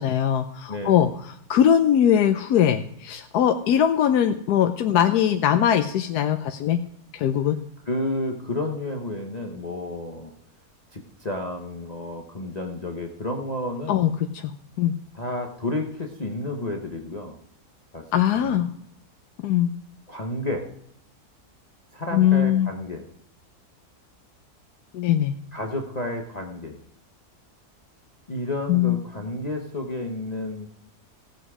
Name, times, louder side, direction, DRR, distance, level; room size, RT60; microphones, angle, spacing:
voice 1, 0.0-6.8 7.1-7.6 13.9-14.5 14.8-14.9 18.1-18.7 19.4-19.7 22.1-22.7 24.9-25.3 28.7-29.0, left 10 dB, 85° left, 7 dB, 1.2 m, -21 dB
voice 2, 0.7-1.1 7.9-10.3 10.9-14.0 15.1-17.3 17.9-18.7 20.1-20.6 21.9-23.0 25.5-26.8 28.3-30.7, left 1 dB, 30° left, 1 dB, 1.1 m, -31 dB
16.0 x 8.1 x 4.9 m, 0.71 s
omnidirectional pair, 1.6 m